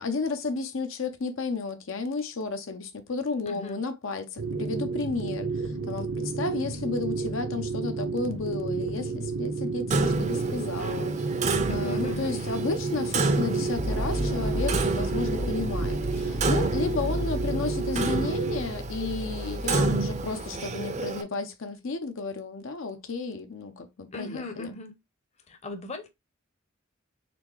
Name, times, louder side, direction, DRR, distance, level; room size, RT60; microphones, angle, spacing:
voice 1, 0.0-11.3 11.7-24.7, left 4 dB, 75° left, 0.7 m, -32 dB
voice 2, 3.5-3.8 11.7-12.4 24.1-25.0 25.5-26.1, left 3 dB, 35° left, 0.8 m, -38 dB
sound 1, 4.4-18.6, right 4 dB, 85° right, 0.9 m, -31 dB
Clock, 9.9-21.2, right 3 dB, 35° right, 0.6 m, -30 dB
sound 2, 13.8-20.6, equal, 10° left, 0.3 m, -33 dB
4.3 x 3.5 x 3.1 m
head